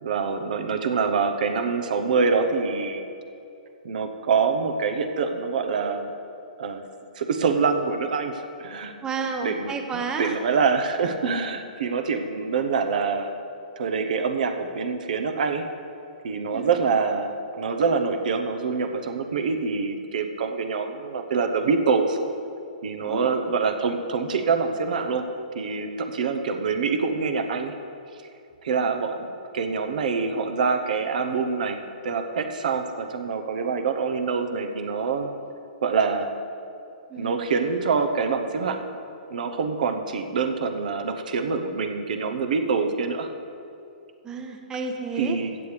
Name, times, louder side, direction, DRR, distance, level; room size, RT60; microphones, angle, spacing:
voice 1, 0.0-3.0 3.8-6.1 6.6-6.8 7.2-8.9 9.4-13.3 13.8-15.7 16.2-22.2 22.8-25.2 25.5-27.7 28.6-31.8 32.0-35.3 35.8-36.3 37.2-38.8 39.3-43.3 45.2-45.6, right 5 dB, 65° right, 6 dB, 0.9 m, -25 dB
voice 2, 9.0-10.4 16.5-16.7 23.0-23.4 28.7-28.8 37.1-37.5 44.2-45.4, right 4 dB, 15° right, 4 dB, 0.8 m, -31 dB
15.5 x 8.1 x 3.4 m, 2.6 s
hypercardioid pair, 135°, 5 cm